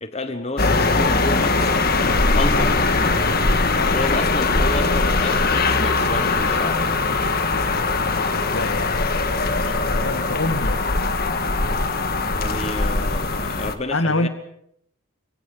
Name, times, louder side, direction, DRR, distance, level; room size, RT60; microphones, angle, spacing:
voice 1, 0.0-1.8 2.3-2.8 3.8-6.8 12.3-14.3, left 2 dB, 30° left, 9 dB, 1.2 m, -30 dB
sound 1, 0.6-13.7, left 3 dB, 45° left, 1.7 m, -21 dB
voice 2, 8.0-11.1 13.5-13.6 13.9-14.3, left 2 dB, 65° left, 10 dB, 1.6 m, -27 dB
26.0 x 23.5 x 5.5 m, 0.73 s
head